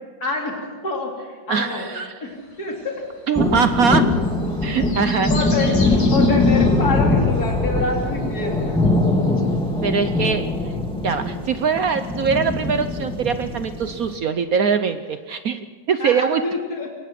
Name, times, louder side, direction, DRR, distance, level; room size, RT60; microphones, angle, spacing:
voice 1, 0.2-1.9 2.2-3.1 5.3-8.9 16.0-17.0, left 3 dB, 50° left, 0 dB, 3.8 m, -27 dB
voice 2, 1.5-2.1 3.3-4.1 4.6-5.3 9.8-10.7 11.0-16.4, right 6 dB, 60° right, 10 dB, 1.0 m, -22 dB
sound 1, 2.3-9.8 10.1-10.2, left 2 dB, 70° left, 4.0 m, -40 dB
sound 2, 3.4-14.2, left 2 dB, 5° left, 2.1 m, -21 dB
23.0 x 19.0 x 6.0 m, 1.5 s
omnidirectional pair, 2.2 m